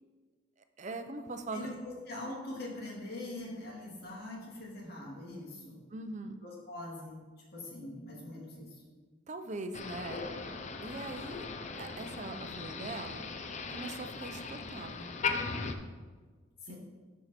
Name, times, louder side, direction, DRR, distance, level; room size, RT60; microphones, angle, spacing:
voice 1, 0.8-1.7 5.9-6.4 9.3-10.2 10.8-11.5 11.8-13.3 13.7-15.1 16.7-16.8, right 2 dB, 40° right, 8 dB, 0.6 m, -41 dB
voice 2, 1.5-5.8 6.4-7.2 7.5-8.8 16.6-16.8, left 1 dB, 55° left, -3 dB, 2.1 m, -43 dB
Motor vehicle (road), 9.7-15.7, left 4 dB, 35° left, 0.5 m, -38 dB
11.0 x 4.6 x 4.2 m, 1.4 s
head